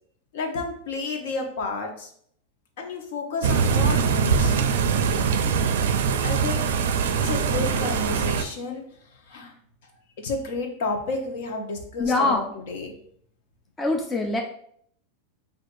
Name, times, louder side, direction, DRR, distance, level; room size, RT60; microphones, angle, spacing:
voice 1, 0.3-2.1 2.8-4.6 6.2-6.7 7.2-8.8 9.3-9.5 10.2-12.9, left 3 dB, 65° left, 3 dB, 0.9 m, -31 dB
sound 1, 3.4-8.4, right 6 dB, 85° right, 0.4 m, -22 dB
voice 2, 12.0-12.4 13.8-14.4, left 2 dB, 10° left, 1 dB, 0.4 m, -23 dB
6.3 x 2.5 x 2.5 m, 0.64 s
supercardioid pair, 165°, 0 cm